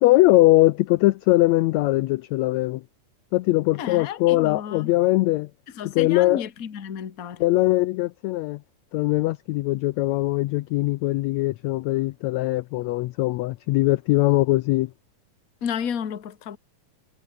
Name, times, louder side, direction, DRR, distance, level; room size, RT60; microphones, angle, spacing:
voice 1, 0.0-2.8 3.3-5.5 5.9-6.4 7.4-8.6 8.9-14.9, left 18 dB, 80° left, 1.6 m, -21 dB
voice 2, 3.8-4.9 5.7-7.4 15.6-16.6, left 8 dB, 40° left, 1.3 m, -32 dB
omnidirectional pair, 3.7 m